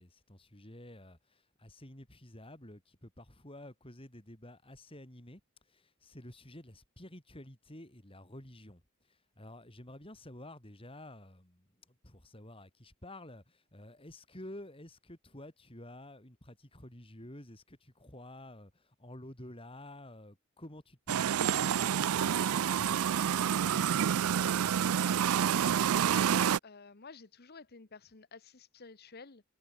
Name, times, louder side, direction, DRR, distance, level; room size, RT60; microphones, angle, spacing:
voice 1, 0.0-5.4 5.7-8.8 9.1-24.6, left 1 dB, 25° left, 4.7 m, -51 dB
sound 1, 21.1-26.6, right 8 dB, 80° right, 0.4 m, -28 dB
voice 2, 26.1-29.4, left 4 dB, 45° left, 1.2 m, -51 dB
head